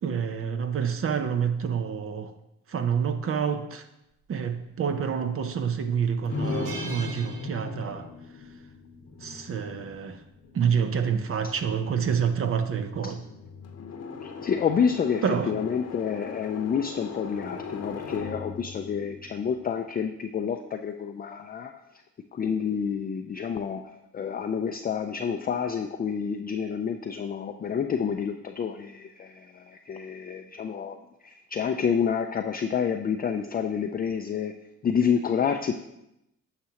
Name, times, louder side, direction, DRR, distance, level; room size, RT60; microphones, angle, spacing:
voice 1, 0.0-2.3 2.7-3.8 4.3-8.1 9.2-10.2 10.5-13.2 15.2-15.5, right 7 dB, 45° right, 0.7 m, -28 dB
sound 1, 5.1-5.4 5.8-5.9 6.3-8.1 8.4-8.6 9.8-10.1, right 4 dB, 90° right, 1.2 m, -43 dB
sound 2, 6.3-20.1, left 4 dB, 55° left, 0.9 m, -39 dB
voice 2, 14.2-21.7 22.3-23.8 24.1-31.0 31.2-34.5 34.8-35.7, left 7 dB, 30° left, 0.4 m, -28 dB
9.6 x 5.9 x 2.9 m
cardioid pair, 90°, 30 cm